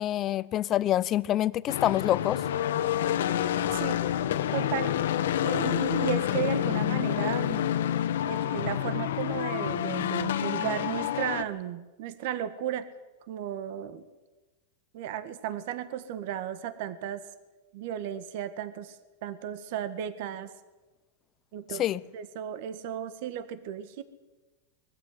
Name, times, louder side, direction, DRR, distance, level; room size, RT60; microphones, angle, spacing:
voice 1, 0.0-2.5 21.8-22.0, left 13 dB, 35° left, 0.7 m, -26 dB
sound 1, 1.7-11.4, left 11 dB, 85° left, 1.5 m, -28 dB
voice 2, 3.7-4.0 4.5-5.0 5.4-7.7 8.2-12.9 13.3-14.0 14.9-17.2 17.7-20.5 21.5-21.8 22.1-24.0, right 10 dB, 60° right, 1.7 m, -34 dB
22.0 x 14.5 x 9.8 m
supercardioid pair, 135°, 0 cm